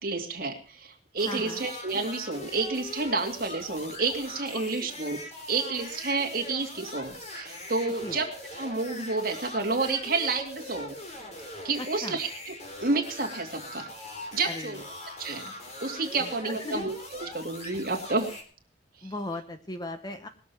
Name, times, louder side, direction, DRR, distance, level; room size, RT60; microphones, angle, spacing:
voice 1, 0.0-5.2 5.5-8.3 8.6-11.0 11.6-12.5 12.8-13.9 14.3-14.8 15.2-15.5 15.8-18.3 19.0-19.1, right 3 dB, 50° right, 2 dB, 2.5 m, -30 dB
sound 1, 1.2-18.4, left 1 dB, 35° left, 3.3 m, -42 dB
voice 2, 1.2-1.6 4.8-4.9 8.0-8.2 11.8-12.2 14.4-14.8 16.2-16.8 19.0-20.3, left 2 dB, 20° left, 8 dB, 1.1 m, -37 dB
20.0 x 7.2 x 6.1 m, 0.41 s
head